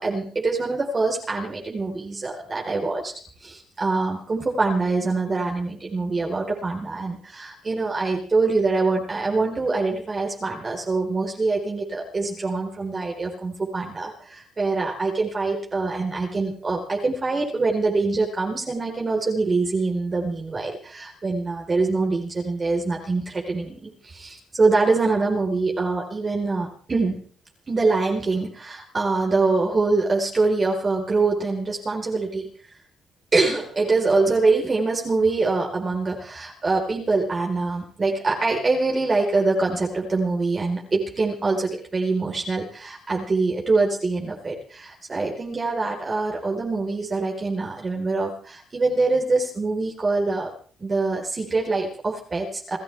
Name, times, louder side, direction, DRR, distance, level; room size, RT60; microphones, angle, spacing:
voice 1, 0.0-3.1 3.4-27.2 27.7-32.5 33.3-50.5 50.8-52.8, right 3 dB, 30° right, -1 dB, 4.3 m, -24 dB
30.0 x 13.0 x 3.5 m, 0.43 s
cardioid pair, 90°, 0 cm